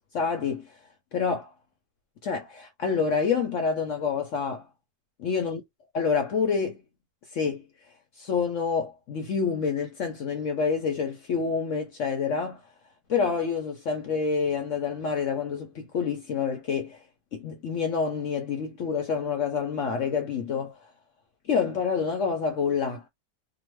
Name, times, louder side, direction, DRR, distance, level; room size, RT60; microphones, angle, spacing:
voice 1, 0.1-0.7 1.1-1.5 2.2-4.7 5.2-5.6 5.9-6.8 7.3-7.6 8.2-12.6 13.1-17.0 17.3-20.7 21.5-23.1, left 5 dB, 70° left, 0.7 m, -27 dB
2.8 x 2.1 x 3.0 m
omnidirectional pair, 1.9 m